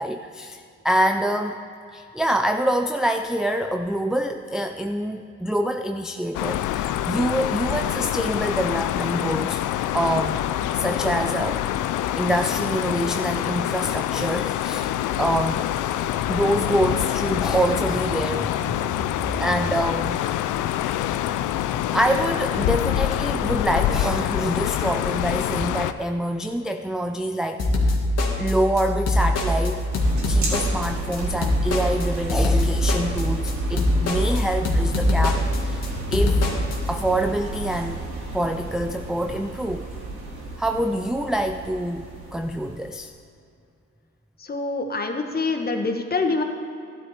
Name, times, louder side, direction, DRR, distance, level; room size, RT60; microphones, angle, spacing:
voice 1, 0.0-1.6 1.9-9.6 9.9-10.5 10.7-14.9 15.2-15.6 16.3-18.9 19.4-20.2 21.9-27.6 28.4-29.9 30.3-35.9 36.1-36.5 36.9-38.0 38.3-39.9 40.6-42.1 42.3-43.1, right 1 dB, ahead, 5 dB, 0.4 m, -25 dB
sound 1, 6.3-25.9, left 12 dB, 85° left, 0.5 m, -26 dB
sound 2, 27.6-36.8, left 1 dB, 55° left, 2.1 m, -22 dB
sound 3, 29.9-42.9, right 2 dB, 65° right, 3.6 m, -33 dB
voice 2, 44.5-46.4, left 3 dB, 30° left, 5 dB, 1.3 m, -25 dB
12.5 x 11.5 x 4.4 m, 2.5 s
cardioid pair, 90°, 30 cm